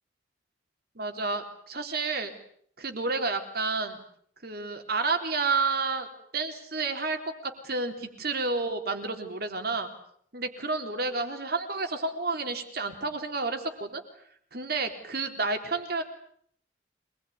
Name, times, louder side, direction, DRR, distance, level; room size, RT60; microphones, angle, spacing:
voice 1, 1.0-2.3 2.8-4.0 4.4-6.1 6.3-9.9 10.3-14.0 14.5-16.0, right 3 dB, 55° right, 6 dB, 3.7 m, -30 dB
26.0 x 21.0 x 9.5 m, 0.65 s
head